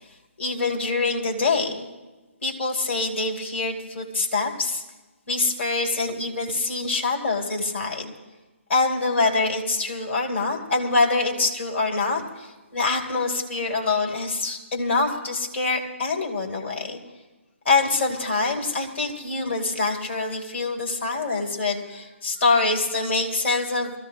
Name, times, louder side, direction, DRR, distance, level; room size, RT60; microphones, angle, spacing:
voice 1, 0.4-1.9 2.4-4.8 5.3-8.1 8.7-17.0 17.7-23.9, left 3 dB, 55° left, 1 dB, 3.5 m, -25 dB
24.5 x 15.5 x 3.0 m, 1.2 s
hypercardioid pair, 155°, 8 cm